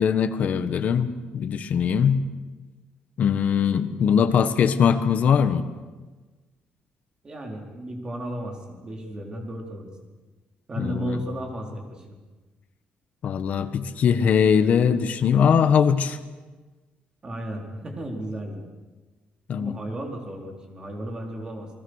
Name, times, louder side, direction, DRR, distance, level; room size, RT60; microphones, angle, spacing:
voice 1, 0.0-2.2 3.2-5.6 10.8-11.2 13.2-16.2 19.5-19.8, left 7 dB, 50° left, 9 dB, 1.3 m, -21 dB
voice 2, 7.2-9.9 10.7-12.2 17.2-18.6 19.6-21.7, right 1 dB, 25° right, 2 dB, 4.1 m, -34 dB
29.5 x 20.0 x 6.5 m, 1.3 s
cardioid pair, 155°, 3 cm